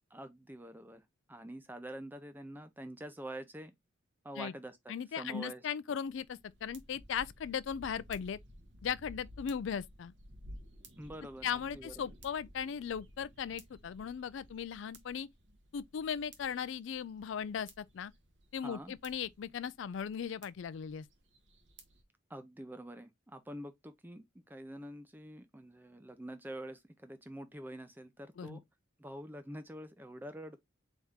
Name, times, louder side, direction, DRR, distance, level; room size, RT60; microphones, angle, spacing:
voice 1, 0.1-1.0 1.3-3.7 4.2-5.6 11.0-12.1 18.6-18.9 22.3-28.6 29.0-30.6, right 1 dB, 10° right, 0.6 m, -46 dB
voice 2, 4.9-8.4 8.8-10.1 11.4-15.3 15.7-18.1 18.5-21.1 28.4-28.6, left 7 dB, 70° left, 0.4 m, -38 dB
sound 1, 6.0-22.0, equal, 65° right, 1.3 m, -56 dB
4.2 x 3.6 x 3.5 m
head